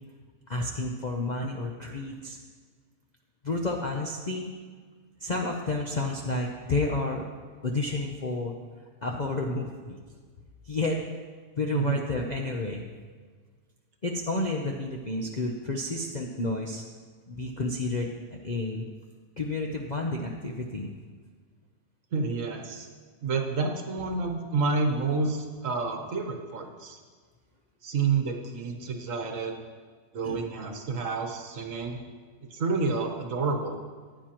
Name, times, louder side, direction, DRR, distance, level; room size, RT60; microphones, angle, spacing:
voice 1, 0.5-2.4 3.4-4.5 5.2-7.2 7.6-8.5 9.0-10.0 10.6-11.0 11.6-12.9 14.0-16.8 17.3-18.8 19.4-20.9 30.2-30.4, left 2 dB, 45° left, 0 dB, 0.6 m, -30 dB
voice 2, 22.1-22.9 23.2-27.0 27.8-29.5 30.1-32.0 32.5-33.7, right 4 dB, 55° right, 3 dB, 1.4 m, -29 dB
14.5 x 9.8 x 3.0 m, 1.6 s
omnidirectional pair, 1.7 m